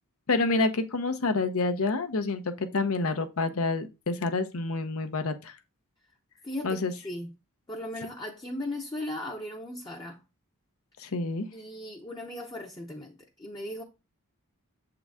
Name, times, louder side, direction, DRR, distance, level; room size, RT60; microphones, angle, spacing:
voice 1, 0.3-5.5 6.6-6.9 11.0-11.5, left 3 dB, 70° left, 0.8 m, -28 dB
voice 2, 6.4-7.3 7.7-10.2 11.5-13.8, left 1 dB, 20° left, 0.7 m, -37 dB
7.3 x 3.9 x 3.5 m
head